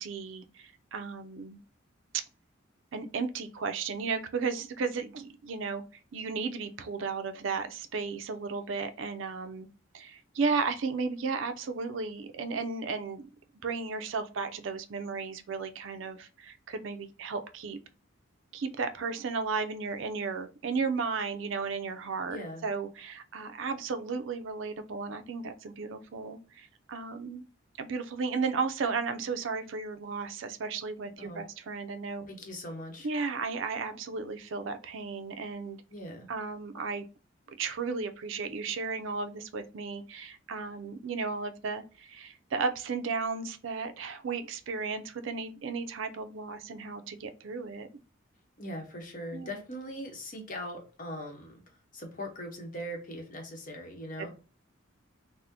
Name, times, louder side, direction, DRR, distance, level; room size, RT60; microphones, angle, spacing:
voice 1, 0.0-1.6 2.9-5.8 6.1-9.7 9.9-13.3 13.6-17.8 18.5-27.4 27.8-32.3 33.0-35.8 36.3-37.1 37.6-47.9 49.3-49.5 54.2-54.3, right 4 dB, 70° right, 0.4 m, -34 dB
voice 2, 22.3-22.6 31.2-31.4 32.3-33.1 35.9-36.3 48.6-54.3, equal, 40° left, 0.8 m, -40 dB
3.5 x 2.1 x 2.7 m
head